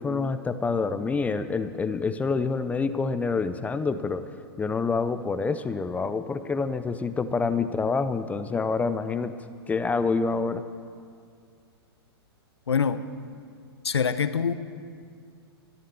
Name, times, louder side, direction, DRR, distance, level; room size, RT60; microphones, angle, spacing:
voice 1, 0.0-4.3 4.6-10.6, left 4 dB, 10° left, 12 dB, 0.5 m, -27 dB
voice 2, 12.7-13.0 13.8-14.5, left 6 dB, 90° left, 13 dB, 0.7 m, -24 dB
13.5 x 11.0 x 6.9 m, 2.2 s
hypercardioid pair, 120°, 13 cm